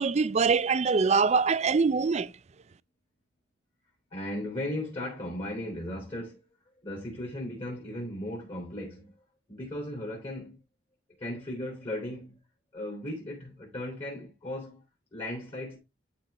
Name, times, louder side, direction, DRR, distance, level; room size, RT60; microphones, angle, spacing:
voice 1, 0.0-2.3, right 5 dB, 35° right, 0.4 m, -24 dB
voice 2, 4.1-6.4 6.8-9.2 9.5-10.6 11.2-12.4 12.7-14.8 15.1-15.8, left 1 dB, 30° left, 3.0 m, -36 dB
11.5 x 4.5 x 3.4 m
head